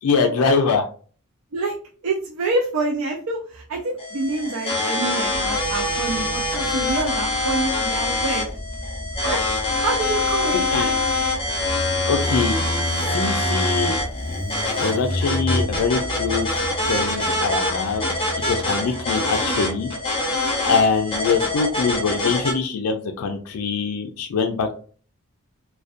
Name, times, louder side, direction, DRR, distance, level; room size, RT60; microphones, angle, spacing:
voice 1, 0.0-0.8 10.7-10.9 12.1-14.0 14.8-16.6 16.9-18.1 18.4-19.9 20.6-24.8, left 5 dB, 80° left, 5 dB, 0.4 m, -23 dB
voice 2, 2.0-8.5 9.2-9.4 9.8-10.9, right 2 dB, 65° right, 0 dB, 0.4 m, -26 dB
sound 1, 4.0-22.5, left 2 dB, 25° left, 0.5 m, -25 dB
Motorcycle, 5.2-22.4, left 1 dB, 15° right, 0.6 m, -32 dB
2.4 x 2.1 x 2.4 m, 0.42 s
head